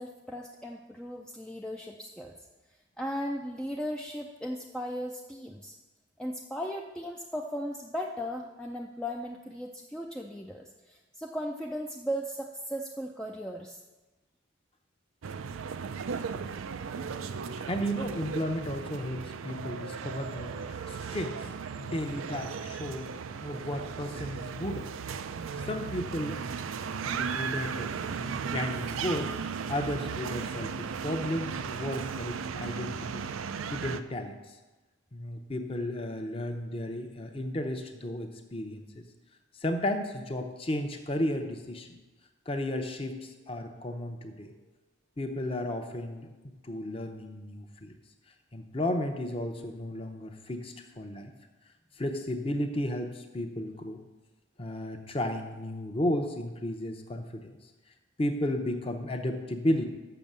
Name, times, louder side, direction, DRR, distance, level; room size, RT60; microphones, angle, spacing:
voice 1, 0.0-2.3 3.0-5.8 6.2-13.8, equal, 5° left, 0 dB, 0.4 m, -37 dB
sound 1, 15.2-34.0, right 6 dB, 90° right, 0.4 m, -36 dB
voice 2, 17.7-21.4 21.8-23.1 23.4-24.9 25.6-26.5 27.0-27.9 28.2-29.3 29.7-33.2 33.7-34.4 35.1-39.0 39.6-41.9 42.5-44.5 45.2-46.3 46.6-47.9 48.5-51.3 52.0-54.0 54.6-57.6 58.2-59.9, left 1 dB, 30° left, 5 dB, 0.7 m, -33 dB
6.9 x 6.2 x 7.4 m, 1.2 s
head